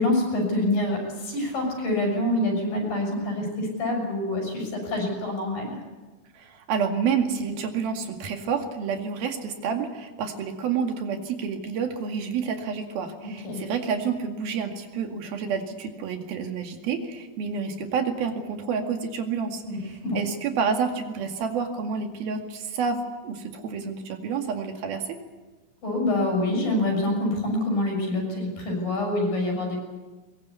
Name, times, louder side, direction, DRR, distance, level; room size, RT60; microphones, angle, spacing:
voice 1, 0.0-5.8 13.4-13.6 19.6-19.8 20.0-20.2 25.8-29.8, left 1 dB, 75° left, 2 dB, 8.2 m, -26 dB
voice 2, 6.4-25.2, right 6 dB, 90° right, 4 dB, 4.1 m, -29 dB
22.5 x 22.5 x 8.4 m, 1.2 s
omnidirectional pair, 4.1 m